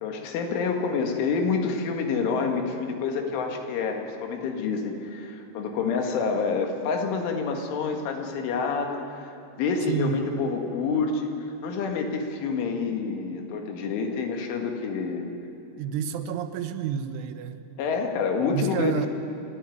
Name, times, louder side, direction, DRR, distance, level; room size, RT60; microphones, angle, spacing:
voice 1, 0.0-11.3 11.6-15.3 17.8-19.1, left 5 dB, 85° left, 3 dB, 4.4 m, -28 dB
voice 2, 9.9-10.2 15.8-17.6 18.5-19.1, right 8 dB, 85° right, 8 dB, 3.4 m, -29 dB
28.5 x 12.5 x 9.4 m, 2.6 s
omnidirectional pair, 5.4 m